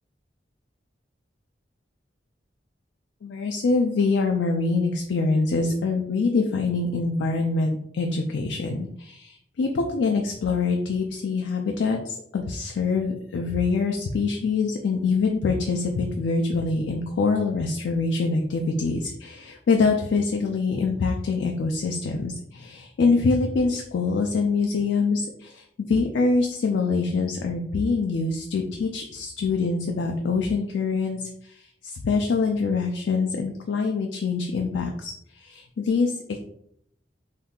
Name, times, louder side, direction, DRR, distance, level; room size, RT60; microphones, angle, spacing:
voice 1, 3.2-36.4, left 4 dB, 90° left, 3 dB, 0.4 m, -25 dB
2.7 x 2.3 x 3.6 m, 0.71 s
head